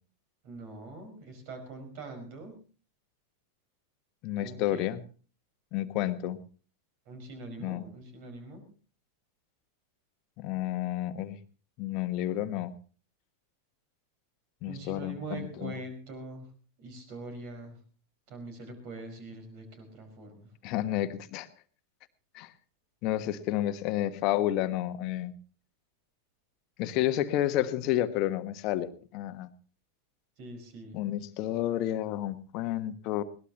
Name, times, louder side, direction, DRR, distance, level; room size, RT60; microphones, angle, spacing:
voice 1, 0.4-2.5 4.4-4.9 7.0-8.6 14.7-16.5 16.8-17.8 18.3-20.5 30.4-31.0, right 2 dB, 45° right, 7 dB, 5.1 m, -43 dB
voice 2, 4.2-5.0 5.7-6.4 7.6-7.8 10.4-11.4 11.8-12.7 14.6-15.7 20.6-21.5 22.3-22.5 23.0-25.3 26.8-29.5 30.9-33.2, left 13 dB, 40° left, 11 dB, 1.3 m, -30 dB
21.5 x 18.0 x 2.9 m, 0.38 s
figure-of-eight pair, 90°, 0 cm